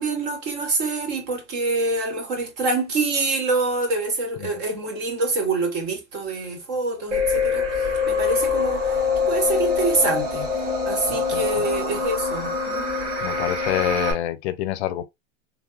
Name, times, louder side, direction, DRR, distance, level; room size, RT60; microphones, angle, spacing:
voice 1, 0.0-9.0 9.3-10.5 10.8-12.9, right 3 dB, 45° right, 1.4 m, -26 dB
sound 1, 7.1-14.1, left 5 dB, 80° right, 1.4 m, -24 dB
voice 2, 11.1-11.7 13.2-15.0, left 12 dB, 65° left, 0.5 m, -27 dB
3.4 x 2.3 x 2.3 m
hypercardioid pair, 115°, 35 cm